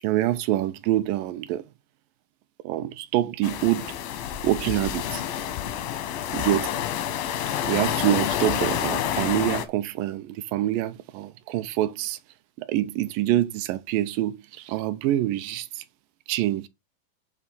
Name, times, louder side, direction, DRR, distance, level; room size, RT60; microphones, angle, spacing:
voice 1, 0.0-1.6 2.6-3.9 4.4-5.2 6.3-6.7 7.7-12.2 12.6-15.8 16.3-16.7, right 14 dB, 80° right, 2.2 m, -26 dB
sound 1, 3.4-9.7, left 10 dB, 85° left, 2.7 m, -28 dB
8.4 x 3.4 x 5.4 m
omnidirectional pair, 4.0 m